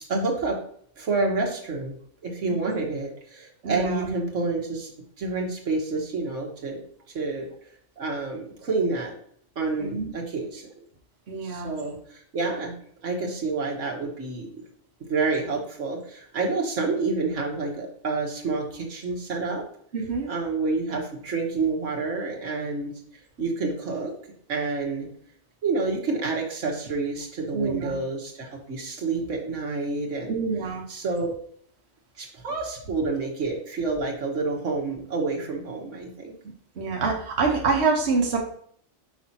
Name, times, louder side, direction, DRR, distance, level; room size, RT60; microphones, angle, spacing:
voice 1, 0.1-0.6 1.0-1.9 2.2-4.9 5.2-6.8 7.1-7.5 8.0-9.1 9.6-10.7 11.4-12.8 13.0-14.5 15.1-19.6 20.3-22.9 23.4-24.1 24.5-25.1 25.6-30.4 30.9-31.3 32.2-36.3, right 3 dB, 85° right, 0 dB, 1.7 m, -28 dB
voice 2, 3.6-4.1 9.8-10.1 11.3-11.7 19.9-20.3 27.5-28.0 30.3-30.9 36.8-38.4, right 4 dB, 60° right, -1 dB, 1.3 m, -26 dB
6.0 x 5.6 x 2.8 m, 0.62 s
omnidirectional pair, 1.2 m